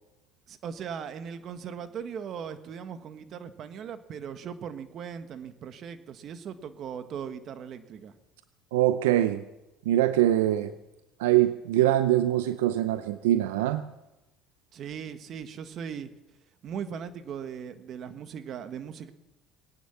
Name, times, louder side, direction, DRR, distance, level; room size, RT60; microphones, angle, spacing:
voice 1, 0.5-8.1 14.7-16.1 16.6-19.1, right 7 dB, 55° right, 10 dB, 1.5 m, -39 dB
voice 2, 8.7-9.4 9.9-10.7 11.2-13.8, right 13 dB, 90° right, 12 dB, 0.6 m, -23 dB
20.5 x 9.7 x 7.2 m, 0.98 s
supercardioid pair, 85°, 0 cm